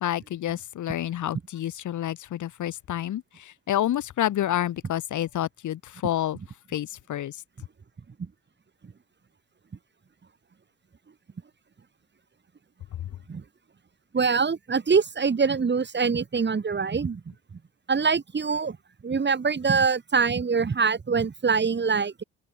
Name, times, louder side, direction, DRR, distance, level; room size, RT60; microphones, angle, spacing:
voice 1, 0.0-6.4 6.7-7.4, left 12 dB, 75° left, 6.1 m, -29 dB
voice 2, 14.1-17.2 17.9-18.8 19.0-22.2, right 5 dB, 35° right, 6.2 m, -24 dB
open air
cardioid pair, 90°, 30 cm